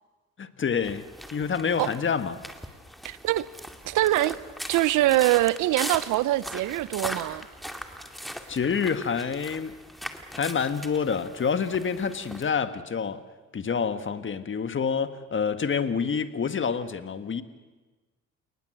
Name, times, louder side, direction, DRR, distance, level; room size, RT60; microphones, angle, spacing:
voice 1, 0.4-1.0 1.3-2.4 8.5-9.7 10.3-13.2 13.5-17.4, left 6 dB, 40° left, 1.7 m, -27 dB
sound 1, 0.8-12.5, equal, ahead, 2.3 m, -40 dB
voice 2, 3.0-3.5 3.8-4.4 4.7-7.5, right 16 dB, 90° right, 0.8 m, -23 dB
29.0 x 19.5 x 7.9 m
cardioid pair, 90°, 30 cm